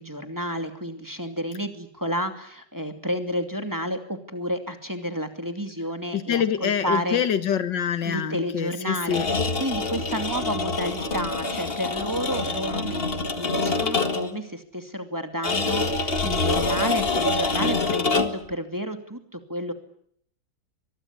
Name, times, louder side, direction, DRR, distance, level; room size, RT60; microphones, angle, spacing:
voice 1, 0.0-7.2 8.0-19.7, equal, 10° right, 6 dB, 2.4 m, -31 dB
voice 2, 6.1-9.3, left 8 dB, 85° left, 12 dB, 2.1 m, -25 dB
sound 1, 9.0-14.4 15.4-18.5, left 3 dB, 35° left, 1.9 m, -26 dB
24.0 x 21.5 x 8.4 m, 0.67 s
omnidirectional pair, 1.9 m